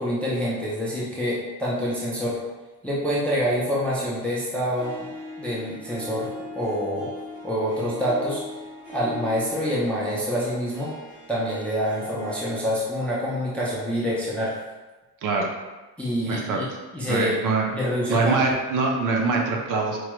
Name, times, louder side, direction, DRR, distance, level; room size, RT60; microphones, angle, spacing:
voice 1, 0.0-2.4 2.8-5.1 5.4-7.1 7.4-8.4 8.9-11.0 11.3-14.6 16.0-16.7 16.9-17.4 17.7-18.4, equal, 5° left, -7 dB, 0.4 m, -26 dB
Harp, 4.7-12.6, left 1 dB, 70° right, 1.1 m, -40 dB
voice 2, 15.2-15.5 16.3-16.6 17.1-17.7 18.1-20.0, right 3 dB, 55° right, 1 dB, 0.6 m, -23 dB
4.5 x 2.2 x 3.0 m, 1.2 s
cardioid pair, 175°, 39 cm